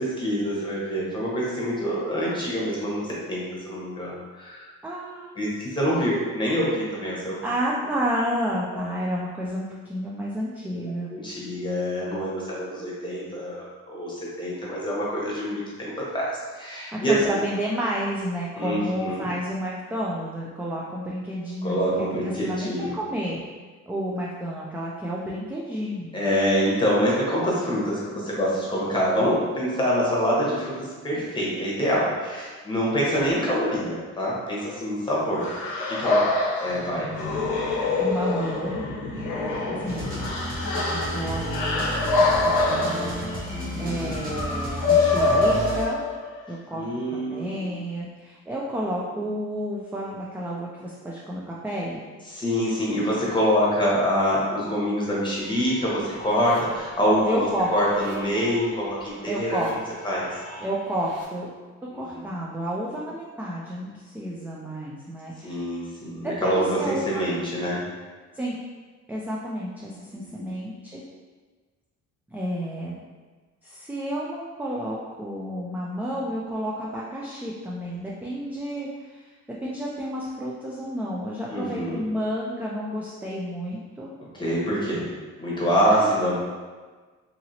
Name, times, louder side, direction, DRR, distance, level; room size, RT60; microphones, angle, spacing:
voice 1, 0.0-4.7 5.4-7.5 11.1-16.3 16.5-17.4 18.5-19.3 21.6-22.9 26.1-35.5 35.9-36.3 36.6-37.1 39.3-40.2 43.5-44.1 46.7-47.7 52.3-59.8 60.0-60.3 61.9-62.3 65.4-67.8 70.3-70.4 81.5-82.0 84.3-85.1 85.4-86.3, equal, 15° left, -6 dB, 1.1 m, -26 dB
voice 2, 4.8-5.5 7.4-11.1 16.9-23.4 23.9-26.1 38.0-38.8 39.7-40.3 40.9-43.2 43.8-46.0 46.5-52.1 57.3-57.7 59.3-59.7 60.6-61.5 61.9-65.6 66.2-67.2 68.3-68.6 69.1-71.0 72.3-73.0 73.6-79.4 79.6-84.1 85.9-86.1, equal, 5° right, -5 dB, 0.3 m, -31 dB
sound 1, 35.4-46.5, left 3 dB, 80° left, 0.7 m, -25 dB
sound 2, 39.9-45.8, right 1 dB, 30° right, 0.7 m, -32 dB
sound 3, 55.0-61.2, left 1 dB, 80° right, 1.0 m, -44 dB
2.9 x 2.7 x 2.7 m, 1.4 s
cardioid pair, 90°, 30 cm